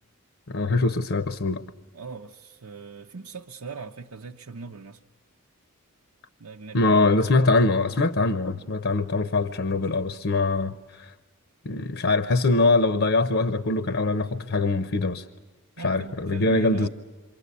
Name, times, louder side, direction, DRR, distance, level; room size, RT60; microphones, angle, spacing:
voice 1, 0.5-1.6 6.7-11.1 11.6-15.3 15.8-16.9, left 3 dB, 60° left, 0.8 m, -23 dB
voice 2, 1.9-5.0 6.4-6.8 15.8-16.9, right 4 dB, 85° right, 0.8 m, -39 dB
28.0 x 23.5 x 8.3 m
head